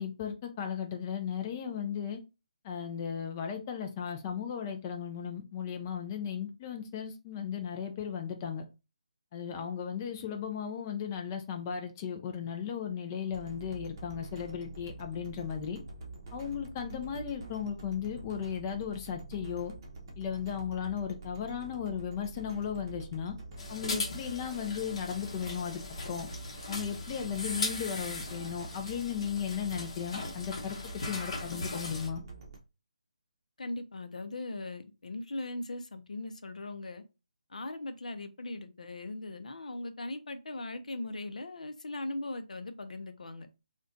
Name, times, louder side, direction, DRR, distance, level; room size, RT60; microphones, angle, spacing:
voice 1, 0.0-2.2 2.6-8.6 9.3-15.8 16.3-19.7 20.2-23.3 23.7-26.3 26.7-32.2, left 8 dB, 25° left, 0.4 m, -36 dB
sound 1, 13.3-32.6, right 3 dB, 30° right, 0.7 m, -46 dB
sound 2, 23.6-32.1, left 3 dB, 45° left, 1.0 m, -39 dB
voice 2, 33.6-37.0 37.5-43.5, left 2 dB, 80° left, 0.5 m, -39 dB
2.4 x 2.2 x 3.7 m
figure-of-eight pair, 160°, 4 cm